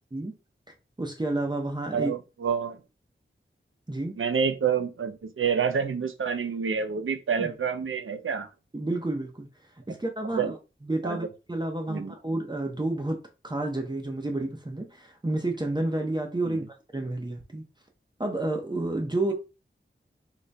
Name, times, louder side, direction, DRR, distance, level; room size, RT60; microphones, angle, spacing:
voice 1, 1.0-2.1 3.9-4.2 7.4-7.5 8.7-9.5 9.9-10.6 10.8-13.2 13.4-16.6 16.9-17.6 18.2-19.3, right 2 dB, 20° right, 0.6 m, -30 dB
voice 2, 1.9-2.8 4.2-8.5 10.3-10.5 11.0-11.3 11.9-12.1 16.4-16.7, right 6 dB, 70° right, 0.5 m, -28 dB
4.0 x 2.2 x 3.3 m
wide cardioid pair, 70°, 21 cm